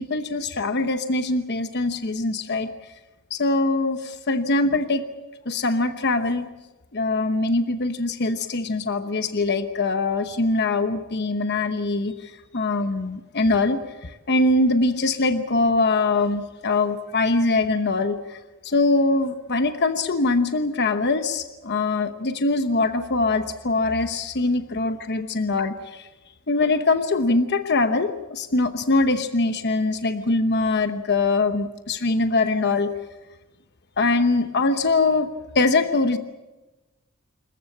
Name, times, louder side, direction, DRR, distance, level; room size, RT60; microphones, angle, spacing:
voice 1, 0.0-2.7 3.3-5.1 5.5-6.5 6.9-26.1 26.5-32.9 34.0-35.3 35.5-36.2, left 3 dB, 55° left, 9 dB, 1.0 m, -23 dB
27.0 x 15.0 x 8.5 m, 1.1 s
head